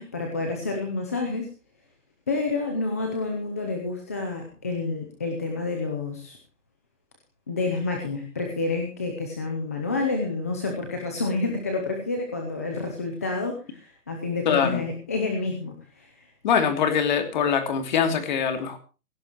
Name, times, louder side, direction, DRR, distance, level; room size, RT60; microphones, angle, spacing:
voice 1, 0.0-1.5 2.3-6.4 7.5-16.3, left 3 dB, 10° left, 2 dB, 0.7 m, -29 dB
voice 2, 14.5-14.8 16.4-18.8, left 7 dB, 30° left, 6 dB, 2.9 m, -23 dB
17.5 x 16.5 x 3.0 m, 0.34 s
hypercardioid pair, 165°, 46 cm